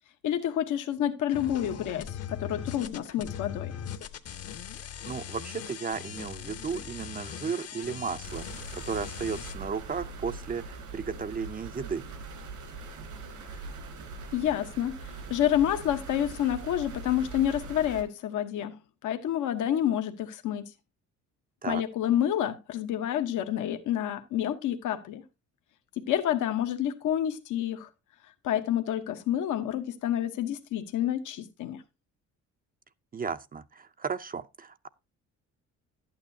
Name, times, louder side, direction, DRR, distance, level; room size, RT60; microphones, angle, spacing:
voice 1, 0.2-3.7 14.3-18.8 19.0-20.7 21.7-25.2 26.0-27.9 28.4-31.8, left 11 dB, 80° left, 1.0 m, -29 dB
sound 1, 1.3-9.6, left 9 dB, 55° left, 0.9 m, -40 dB
voice 2, 5.1-12.0 21.6-21.8 33.1-34.9, right 5 dB, 30° right, 0.5 m, -34 dB
sound 2, 8.2-18.0, right 3 dB, 85° right, 3.3 m, -42 dB
11.5 x 9.0 x 2.7 m
cardioid pair, 90°, 30 cm